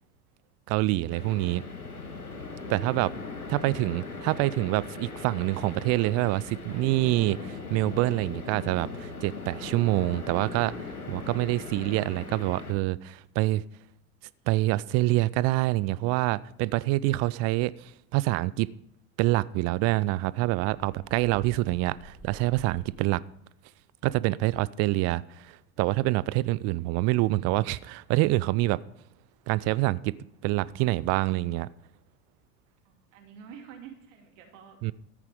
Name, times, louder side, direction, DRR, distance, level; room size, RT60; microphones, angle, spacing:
voice 1, 0.7-1.6 2.7-3.1 3.5-10.8 11.1-13.6 14.5-18.7 19.2-23.2 24.0-28.8 29.5-30.2 30.4-31.7 34.8-34.9, right 18 dB, 35° right, 0.5 m, -26 dB
sound 1, 1.1-12.7, left 4 dB, 90° left, 1.8 m, -39 dB
voice 2, 3.1-3.8 4.4-4.7 24.7-24.9 32.8-34.9, right 7 dB, 60° right, 2.6 m, -50 dB
sound 2, 20.5-23.3, right 1 dB, 5° right, 1.5 m, -49 dB
13.5 x 9.0 x 4.9 m
figure-of-eight pair, 80°, 43 cm